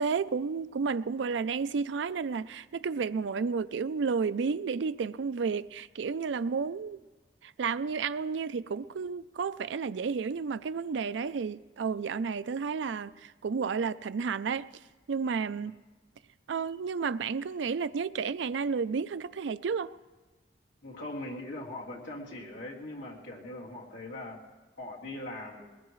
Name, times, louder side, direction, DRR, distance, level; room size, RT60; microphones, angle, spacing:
voice 1, 0.0-7.0 7.4-14.7 15.1-15.8 16.5-19.9, right 5 dB, 80° right, 0.4 m, -31 dB
voice 2, 20.8-24.4 24.8-25.7, left 1 dB, 85° left, 3.0 m, -40 dB
21.5 x 20.5 x 3.1 m
head